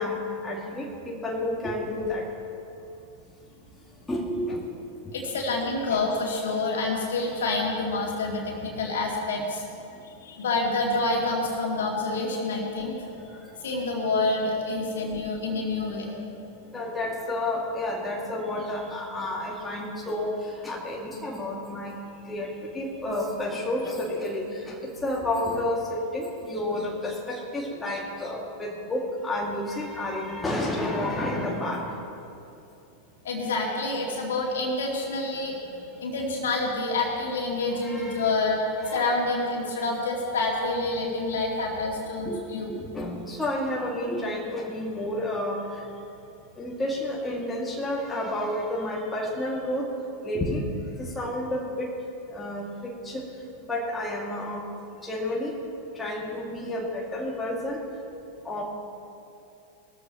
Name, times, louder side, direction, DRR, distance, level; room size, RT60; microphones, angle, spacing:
voice 1, 0.0-2.3 4.1-4.7 14.2-14.3 14.8-15.1 16.7-21.9 22.3-31.9 37.8-38.3 38.8-39.0 42.2-42.4 42.7-45.6 46.6-49.9 50.2-50.6 51.0-51.9 52.3-53.2 53.7-54.7 55.0-55.5 56.0-57.8 58.4-58.6, left 1 dB, 10° left, -3 dB, 2.1 m, -30 dB
voice 2, 5.1-9.6 10.0-13.0 13.6-16.1 33.2-35.6 36.0-38.6 38.9-42.7, left 2 dB, 60° left, -1 dB, 2.6 m, -27 dB
20.5 x 13.5 x 3.0 m, 2.7 s
figure-of-eight pair, 90°, 0 cm